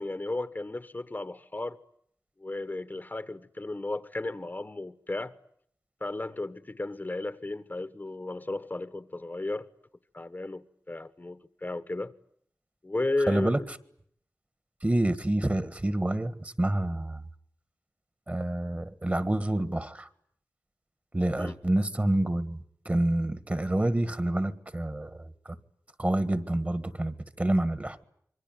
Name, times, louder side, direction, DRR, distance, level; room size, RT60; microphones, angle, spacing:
voice 1, 0.0-1.8 2.4-5.3 6.0-9.7 10.1-12.1 12.8-13.6 21.4-21.6, left 2 dB, 30° left, 1.1 m, -34 dB
voice 2, 13.3-13.8 14.8-17.2 18.3-20.1 21.1-25.6 26.0-28.0, right 1 dB, 25° right, 1.6 m, -28 dB
26.5 x 23.5 x 9.1 m
wide cardioid pair, 95°, 6 cm